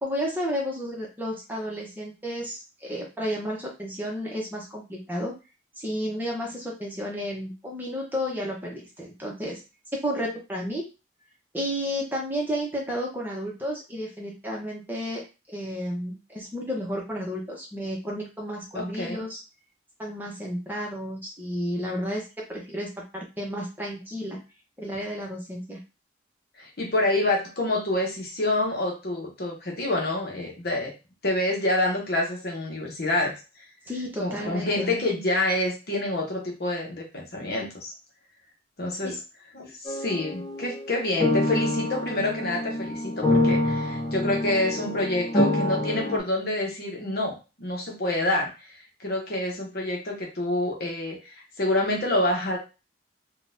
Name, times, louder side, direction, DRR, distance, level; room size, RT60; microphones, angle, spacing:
voice 1, 0.0-5.3 5.8-9.6 9.9-10.9 11.5-15.2 15.5-19.4 20.0-24.4 24.8-25.8 33.9-34.9 39.0-39.1, equal, 10° right, -2 dB, 0.8 m, -32 dB
voice 2, 18.7-19.2 26.6-30.9 31.2-33.4 34.2-37.9 38.8-39.2 39.5-48.5 49.0-52.6, left 2 dB, 55° left, 0 dB, 0.9 m, -27 dB
sound 1, 39.8-46.2, left 1 dB, 20° left, 0.5 m, -26 dB
3.7 x 2.3 x 2.6 m, 0.29 s
head